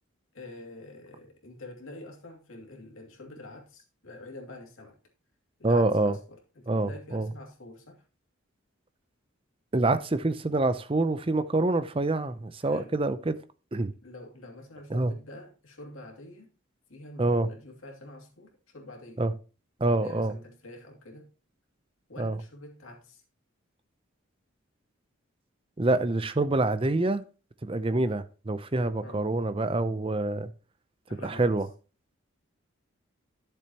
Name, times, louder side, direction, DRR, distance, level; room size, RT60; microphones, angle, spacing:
voice 1, 0.3-5.0 5.6-8.0 12.6-12.9 14.0-16.5 16.9-19.2 19.9-21.3 22.1-23.2 29.0-29.2 31.1-31.5, left 2 dB, 85° left, 2.5 m, -46 dB
voice 2, 5.6-6.2 6.7-7.3 9.7-13.4 13.7-13.9 14.9-15.1 17.2-17.5 19.2-19.3 19.8-20.3 22.2-22.4 25.8-27.2 27.6-30.5 31.2-31.7, right 2 dB, 25° right, 0.6 m, -26 dB
11.5 x 6.9 x 2.9 m
head